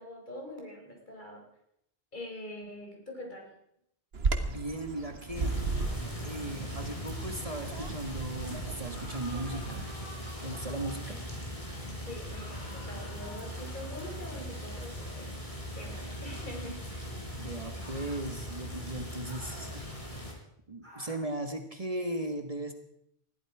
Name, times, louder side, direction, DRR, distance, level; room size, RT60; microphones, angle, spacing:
voice 1, 0.0-1.4 2.1-3.5 12.1-15.3 15.8-16.8, left 1 dB, 50° left, 1 dB, 4.5 m, -44 dB
Bird vocalization bird call bird song, 4.1-9.8, right 4 dB, 75° right, 1.6 m, -35 dB
voice 2, 4.4-5.5 6.2-9.9 10.4-11.2 17.3-20.2 20.7-22.7, right 1 dB, 35° right, 6 dB, 1.6 m, -37 dB
sound 1, 5.3-20.3, equal, 35° left, 4.0 m, -40 dB
sound 2, 8.9-11.2 12.3-14.6 16.2-16.6 17.8-18.3 19.2-19.8 20.8-21.3, left 1 dB, 15° right, 5.2 m, -51 dB
20.5 x 14.0 x 4.9 m, 0.76 s
omnidirectional pair, 1.0 m